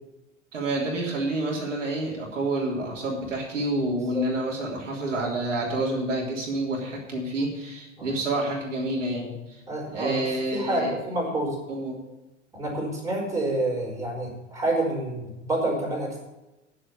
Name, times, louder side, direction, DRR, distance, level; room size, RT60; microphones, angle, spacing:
voice 1, 0.5-9.6 9.9-11.0 11.7-12.0, right 2 dB, 75° right, -3 dB, 3.4 m, -28 dB
voice 2, 9.7-10.2 10.5-11.6 12.5-16.2, right 1 dB, 10° right, -3 dB, 5.1 m, -28 dB
9.8 x 7.8 x 8.5 m, 1.0 s
figure-of-eight pair, 90°, 38 cm